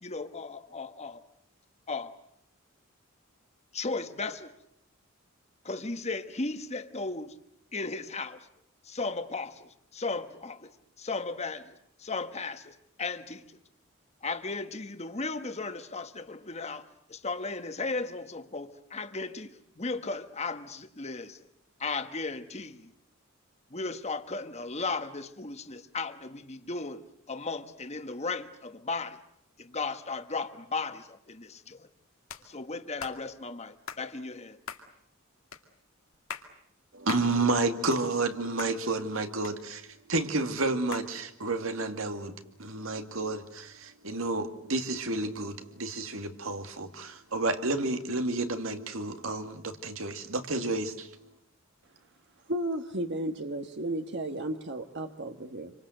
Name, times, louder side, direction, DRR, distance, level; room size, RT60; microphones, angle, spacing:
voice 1, 0.0-1.2 1.9-2.2 3.7-4.5 5.6-7.3 7.7-8.5 8.8-10.7 11.0-13.4 14.2-21.5 21.8-22.9 23.7-29.2 29.6-31.9 32.4-34.6, left 3 dB, 30° left, 1.3 m, -36 dB
sound 1, 32.3-32.5 33.0-33.2 33.9-34.0 34.7-34.9 35.5-35.6 36.1-36.5 37.1-37.3 37.7-38.3 38.6-38.7 39.4-40.0 40.9-41.1, left 6 dB, 80° left, 2.4 m, -41 dB
voice 2, 36.9-51.3, right 2 dB, 75° right, 2.3 m, -31 dB
voice 3, 52.5-55.7, right 1 dB, 55° right, 1.5 m, -33 dB
27.5 x 25.0 x 7.9 m
head